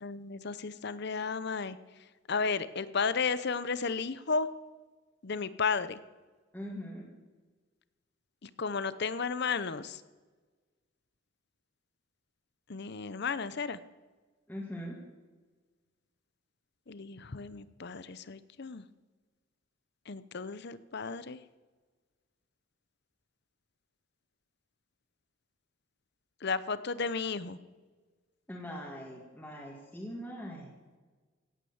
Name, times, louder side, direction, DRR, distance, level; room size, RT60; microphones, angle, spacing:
voice 1, 0.0-1.8 2.3-4.5 5.2-6.0 8.4-10.0 12.7-13.8 16.9-18.8 20.1-21.4 26.4-27.6, left 5 dB, 55° left, 15 dB, 0.7 m, -33 dB
voice 2, 6.5-7.1 14.5-15.0 28.5-30.7, equal, 10° left, -4 dB, 2.4 m, -41 dB
17.0 x 9.8 x 7.2 m, 1.3 s
head